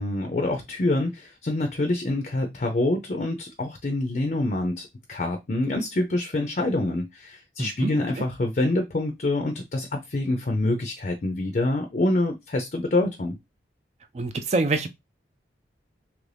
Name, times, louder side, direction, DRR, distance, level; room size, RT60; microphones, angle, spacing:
voice 1, 0.0-13.4, left 2 dB, 45° left, 0.5 m, -26 dB
voice 2, 7.6-8.2 14.1-14.9, right 3 dB, 35° right, 0.3 m, -26 dB
3.0 x 2.5 x 3.3 m
head